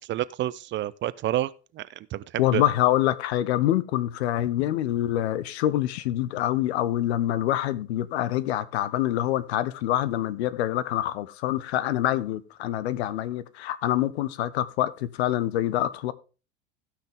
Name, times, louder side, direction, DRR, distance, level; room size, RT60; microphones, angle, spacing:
voice 1, 0.0-1.5 1.8-1.9 2.1-2.6, right 13 dB, 35° right, 0.5 m, -29 dB
voice 2, 2.4-16.1, left 13 dB, 65° left, 0.8 m, -26 dB
16.0 x 5.8 x 3.5 m
figure-of-eight pair, 75°, 35 cm